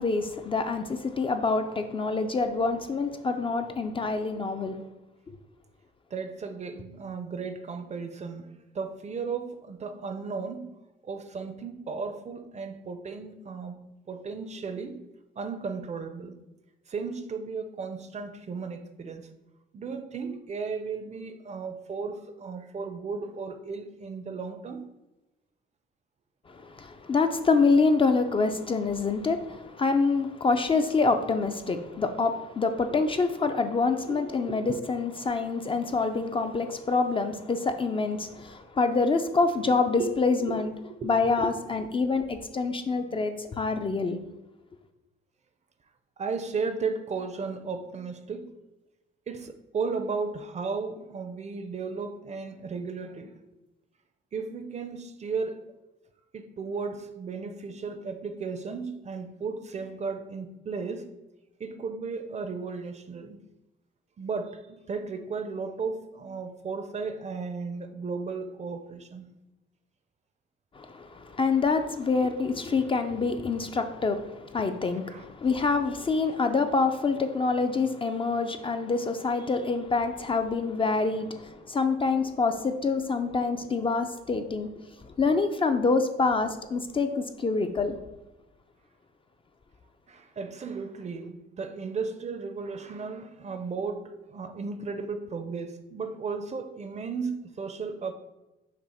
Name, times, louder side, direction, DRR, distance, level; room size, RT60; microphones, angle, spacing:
voice 1, 0.0-4.8 26.5-40.7 41.0-44.2 70.8-84.7 85.2-88.0, left 4 dB, 25° left, 0.4 m, -26 dB
voice 2, 6.1-10.7 11.0-13.8 14.1-15.0 15.4-16.4 16.9-19.3 19.7-24.8 34.0-34.8 40.0-40.1 40.4-41.1 41.4-41.5 46.2-48.5 49.3-53.3 54.3-55.7 56.3-61.1 61.6-63.4 64.2-69.3 75.1-75.2 90.1-98.1, right 4 dB, 35° right, 0.5 m, -35 dB
5.8 x 2.0 x 4.2 m
cardioid pair, 90°, 20 cm